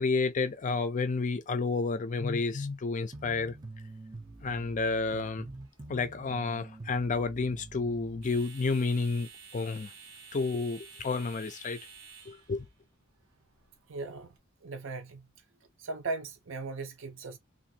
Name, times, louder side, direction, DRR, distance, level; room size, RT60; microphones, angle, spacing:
voice 1, 0.0-3.5 4.4-5.5 5.9-9.9 10.3-11.8 12.3-12.7, left 4 dB, 35° left, 0.4 m, -30 dB
sound 1, 3.1-8.4, right 2 dB, 20° right, 0.5 m, -46 dB
sound 2, 3.1-14.4, right 5 dB, 90° right, 1.2 m, -54 dB
voice 2, 13.9-15.3 15.8-17.4, right 3 dB, 60° right, 0.7 m, -38 dB
2.6 x 2.6 x 2.7 m
head